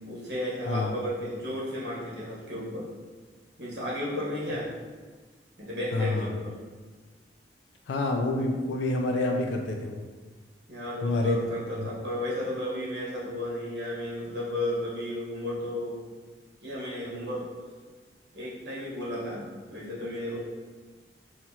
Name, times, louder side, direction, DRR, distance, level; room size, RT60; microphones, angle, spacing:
voice 1, 0.1-2.9 3.6-4.7 5.6-6.6 10.7-16.0 16.6-17.5 18.3-20.4, left 1 dB, 65° right, -6 dB, 1.2 m, -33 dB
voice 2, 5.9-6.3 7.9-10.0 11.0-11.4, left 2 dB, 90° left, 2 dB, 0.4 m, -27 dB
4.4 x 2.4 x 2.8 m, 1.4 s
head